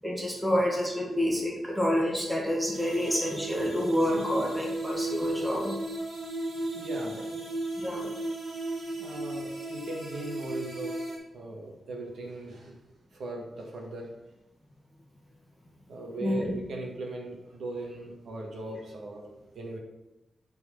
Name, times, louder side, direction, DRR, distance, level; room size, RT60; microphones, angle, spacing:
voice 1, 0.0-5.7 7.8-8.1 16.2-16.5, equal, ahead, -3 dB, 1.9 m, -28 dB
sound 1, 2.7-11.2, right 1 dB, 50° right, 3.4 m, -35 dB
voice 2, 6.7-7.5 7.9-8.1 9.0-11.0 11.3-12.8 13.1-14.1 15.9-19.8, right 2 dB, 70° right, 0 dB, 1.8 m, -39 dB
8.6 x 4.7 x 5.6 m, 1.0 s
wide cardioid pair, 160°, 0 cm